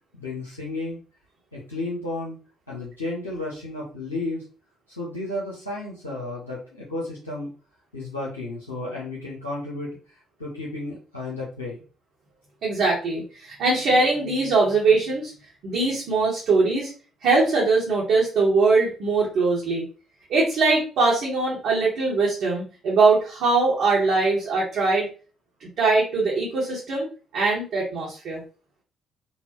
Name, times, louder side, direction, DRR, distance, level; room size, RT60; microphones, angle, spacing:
voice 1, 0.1-1.0 1.5-2.4 2.7-4.4 4.9-7.5 7.9-11.8, left 2 dB, 90° left, -7 dB, 0.6 m, -33 dB
voice 2, 12.6-15.3 15.6-16.9 17.2-19.8 20.3-25.1 25.6-27.1 27.3-28.4, right 3 dB, 60° right, -5 dB, 0.9 m, -21 dB
4.0 x 2.1 x 2.8 m, 0.36 s
figure-of-eight pair, 45°, 0 cm